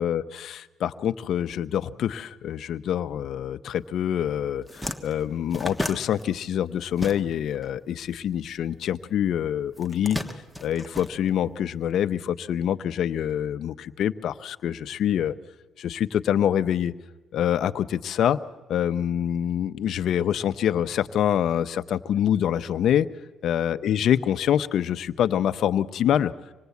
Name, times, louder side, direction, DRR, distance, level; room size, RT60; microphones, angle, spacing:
voice 1, 0.0-10.2 10.6-15.3 15.8-16.9 17.3-18.4 18.7-23.1 23.4-26.3, left 10 dB, 65° left, 12 dB, 0.7 m, -25 dB
sound 1, 4.1-4.2 4.5-7.6 7.9-9.1 9.7-11.8, left 1 dB, ahead, 1.3 m, -34 dB
25.5 x 19.5 x 8.3 m, 1.1 s
cardioid pair, 115°, 0 cm